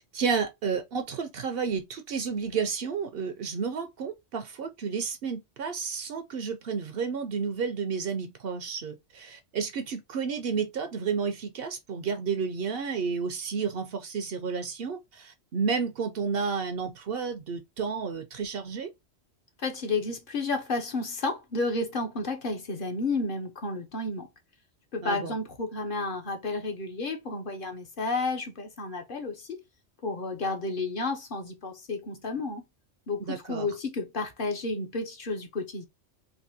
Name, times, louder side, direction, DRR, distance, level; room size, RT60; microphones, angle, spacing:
voice 1, 0.1-18.9 25.0-25.3 33.2-33.7, right 5 dB, 60° right, 0.7 m, -31 dB
voice 2, 19.6-24.3 24.9-29.6 30.0-32.6 33.1-35.8, left 3 dB, 50° left, 0.9 m, -31 dB
3.6 x 2.6 x 2.7 m
omnidirectional pair, 1.2 m